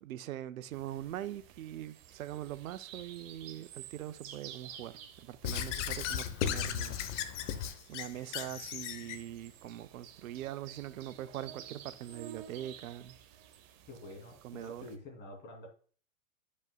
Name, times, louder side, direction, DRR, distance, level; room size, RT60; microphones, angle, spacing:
voice 1, 0.0-7.0 7.9-13.2 14.4-14.9, right 12 dB, 80° right, 0.6 m, -42 dB
sound 1, 0.7-15.0, right 10 dB, 45° right, 1.0 m, -52 dB
Squeak / Writing, 5.4-9.2, left 8 dB, 60° left, 0.9 m, -36 dB
voice 2, 13.9-15.7, left 1 dB, 25° left, 2.8 m, -48 dB
12.0 x 5.4 x 2.3 m
hypercardioid pair, 125°, 41 cm